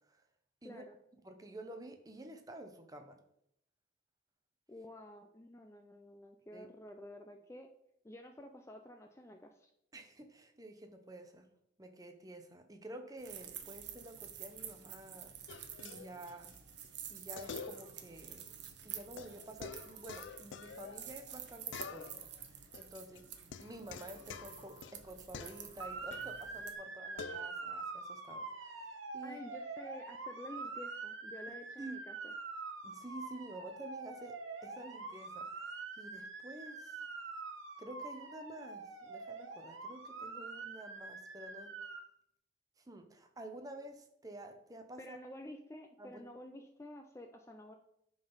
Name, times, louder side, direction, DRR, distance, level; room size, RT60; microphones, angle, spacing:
voice 1, 0.6-1.0 4.7-7.7 8.0-9.7 29.2-32.3 45.0-47.7, left 1 dB, 15° left, 4 dB, 0.4 m, -51 dB
voice 2, 1.2-3.2 6.5-6.7 9.9-11.5 11.8-16.6 17.1-18.5 18.8-23.3 23.6-29.4 31.8-32.0 32.8-37.0 37.8-41.8 42.8-45.2 46.0-46.3, right 1 dB, 20° right, 6 dB, 0.8 m, -50 dB
sound 1, 13.2-26.7, right 9 dB, 60° right, 0.9 m, -49 dB
sound 2, 15.5-16.6 16.8-16.9 17.4-18.2 18.4-18.5 19.2-21.4 21.7-22.4 22.7-26.4 27.2-27.5, left 5 dB, 75° left, 0.4 m, -48 dB
Motor vehicle (road) / Siren, 25.8-42.0, right 4 dB, 90° right, 1.2 m, -45 dB
9.9 x 4.0 x 5.5 m, 0.77 s
head